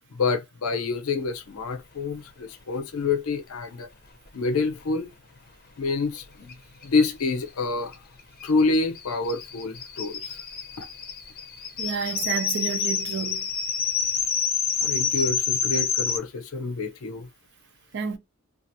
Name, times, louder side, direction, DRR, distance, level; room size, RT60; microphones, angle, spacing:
voice 1, 0.1-3.9 4.3-5.1 5.8-6.6 6.8-7.9 8.4-10.4 10.8-10.9 14.8-17.3, left 3 dB, 85° left, 0.6 m, -27 dB
sound 1, 6.5-6.6 6.8-6.9 7.2-16.2, left 6 dB, 45° left, 0.6 m, -28 dB
voice 2, 11.8-13.4 17.9-18.2, right 6 dB, 55° right, 0.5 m, -29 dB
2.7 x 2.5 x 2.6 m
head